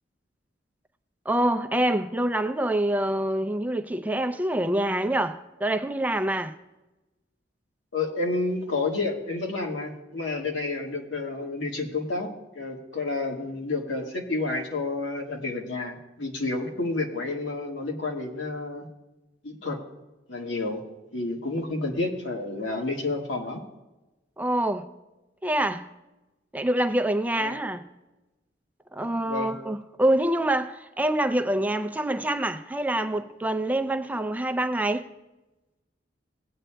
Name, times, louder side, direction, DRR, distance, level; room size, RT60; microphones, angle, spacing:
voice 1, 1.3-6.5 24.4-24.9 25.4-25.9 26.5-27.8 28.9-35.0, right 1 dB, 10° right, 0.4 m, -26 dB
voice 2, 7.9-12.3 12.5-18.9 19.4-19.8 20.3-20.8 21.1-23.6 27.4-27.5 29.3-29.5, left 3 dB, 90° left, 1.7 m, -30 dB
17.5 x 8.7 x 2.2 m
head